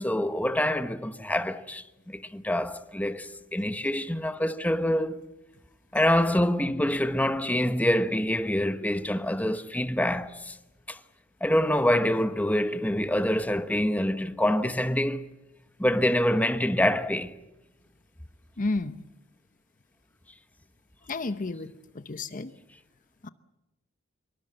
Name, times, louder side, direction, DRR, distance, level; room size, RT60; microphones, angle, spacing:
voice 1, 0.0-5.2 5.9-10.6 10.9-11.0 11.4-15.3 15.8-17.3, left 1 dB, 10° left, 1.0 m, -26 dB
voice 2, 18.6-19.0 21.1-22.5 23.2-23.3, left 3 dB, 40° left, 0.8 m, -32 dB
25.0 x 23.5 x 7.8 m
head